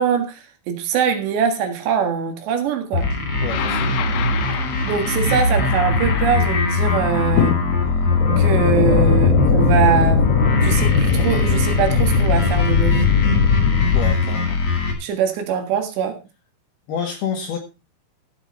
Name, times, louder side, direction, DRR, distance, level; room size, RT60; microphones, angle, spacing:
voice 1, 0.0-3.1 4.8-7.6 8.4-10.2 10.6-13.1 15.0-16.2, right 7 dB, 70° right, 3.7 m, -22 dB
sound 1, 2.9-14.9, left 2 dB, 45° left, 2.6 m, -21 dB
voice 2, 3.4-4.3 13.9-14.6 16.9-17.6, left 7 dB, 65° left, 3.0 m, -28 dB
sound 2, 3.5-6.7 7.4-14.1, left 6 dB, 80° left, 2.1 m, -20 dB
15.0 x 8.0 x 4.2 m
omnidirectional pair, 5.5 m